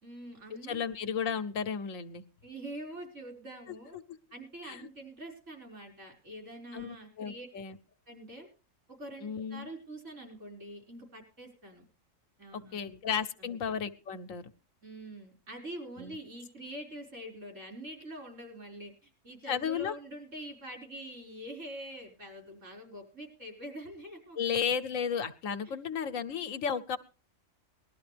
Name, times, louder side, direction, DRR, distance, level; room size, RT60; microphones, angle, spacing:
voice 1, 0.0-0.8 2.4-4.0 4.3-7.5 8.1-8.5 9.0-11.8 12.4-12.9 13.4-13.6 14.8-24.4 25.7-25.8, right 1 dB, 70° right, 2 dB, 5.5 m, -45 dB
voice 2, 0.7-2.2 4.6-4.8 6.7-7.8 9.2-9.7 12.5-14.4 16.0-16.2 19.5-19.9 24.4-27.0, left 7 dB, 80° left, 10 dB, 1.3 m, -33 dB
20.0 x 12.5 x 3.4 m, 0.34 s
omnidirectional pair, 1.3 m